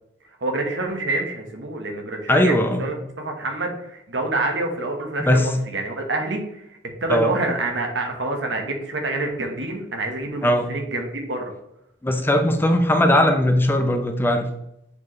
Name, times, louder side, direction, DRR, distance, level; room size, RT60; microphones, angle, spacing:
voice 1, 0.4-11.5, right 2 dB, 70° right, 3 dB, 1.2 m, -27 dB
voice 2, 2.3-2.8 5.2-5.5 7.1-7.3 10.4-10.7 12.0-14.5, left 1 dB, 10° left, 5 dB, 0.5 m, -19 dB
7.0 x 4.7 x 3.1 m, 0.80 s
head